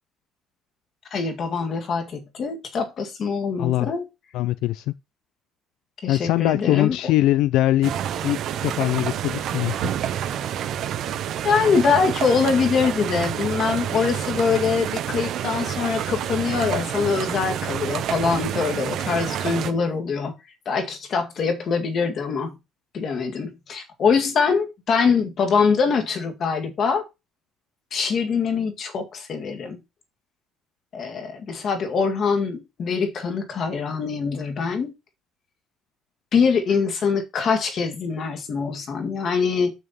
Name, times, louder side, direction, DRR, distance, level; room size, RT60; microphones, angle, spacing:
voice 1, 1.1-4.1 6.0-7.0 11.4-20.3 20.7-22.5 22.9-27.0 27.9-29.8 30.9-34.9 36.3-39.7, left 5 dB, 40° left, 1.8 m, -23 dB
voice 2, 3.6-3.9 4.3-4.9 6.1-7.9 8.2-9.9, left 15 dB, 75° left, 0.4 m, -22 dB
sound 1, 7.8-19.7, right 10 dB, 55° right, 0.9 m, -28 dB
7.1 x 6.4 x 4.2 m
cardioid pair, 155°, 0 cm